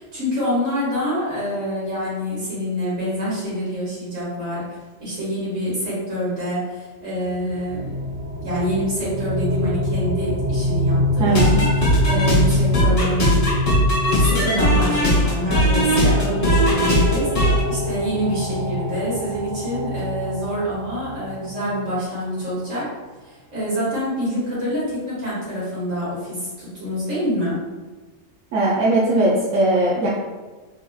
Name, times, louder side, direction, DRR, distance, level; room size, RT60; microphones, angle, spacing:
voice 1, 0.0-4.6 5.0-7.9 8.4-13.4 14.1-22.9 23.2-27.6, equal, 75° right, -9 dB, 2.0 m, -26 dB
sound 1, 7.2-22.0, left 1 dB, 55° right, 0.8 m, -25 dB
voice 2, 11.2-11.5 28.5-30.1, right 2 dB, 90° right, -5 dB, 1.0 m, -19 dB
sound 2, 11.3-17.6, equal, 30° left, 0.8 m, -19 dB
3.9 x 2.6 x 2.3 m, 1.3 s
omnidirectional pair, 1.3 m